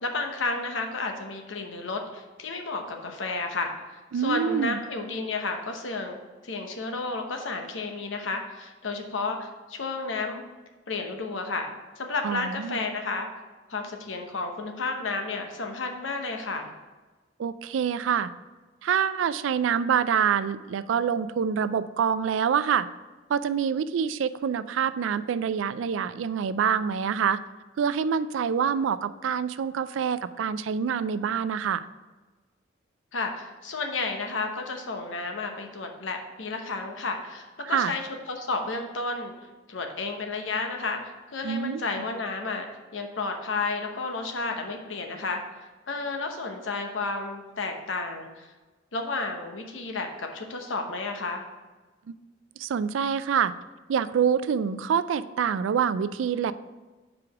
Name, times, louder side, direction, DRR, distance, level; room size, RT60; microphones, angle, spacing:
voice 1, 0.0-6.2 6.4-10.5 10.9-11.7 12.0-13.3 13.7-16.7 33.1-38.0 38.3-39.3 39.7-42.7 42.9-45.4 45.9-48.5 48.9-51.4, left 3 dB, 90° left, 4 dB, 0.9 m, -32 dB
voice 2, 4.1-4.8 12.2-12.8 17.4-18.3 18.8-22.9 23.3-27.4 27.8-31.9 37.6-37.9 41.4-42.0 52.1-52.2 52.6-53.5 53.9-56.5, right 7 dB, 85° right, 15 dB, 0.3 m, -26 dB
4.9 x 4.8 x 5.9 m, 1.3 s
head